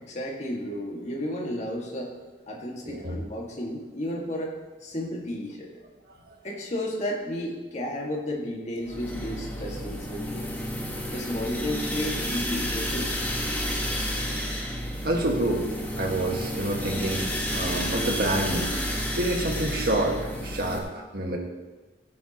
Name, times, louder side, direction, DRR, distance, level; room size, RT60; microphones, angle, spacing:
voice 1, 0.0-2.1 2.5-5.7 6.4-10.5 11.1-13.2, left 1 dB, 40° left, -1 dB, 2.1 m, -33 dB
voice 2, 2.8-3.2 15.0-15.7 16.0-18.7 19.2-21.4, right 1 dB, 60° right, 1 dB, 1.9 m, -28 dB
sound 1, 8.9-20.8, equal, 10° left, 1.7 m, -31 dB
16.0 x 10.0 x 3.1 m, 1.2 s
head